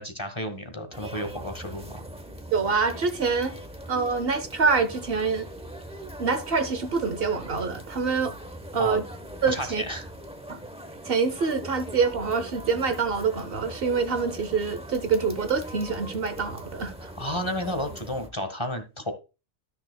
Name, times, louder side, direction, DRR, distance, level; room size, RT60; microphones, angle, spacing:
voice 1, 0.0-2.1 8.8-9.0 9.5-10.1 17.0-19.1, equal, 25° left, 1.2 m, -32 dB
sound 1, 0.9-18.3, right 1 dB, 5° right, 0.7 m, -41 dB
voice 2, 2.5-3.6 3.9-5.5 6.2-8.3 8.7-9.0 9.4-9.8 10.5-10.6 11.0-17.1, right 5 dB, 60° right, 1.1 m, -26 dB
12.5 x 6.5 x 2.2 m
omnidirectional pair, 1.2 m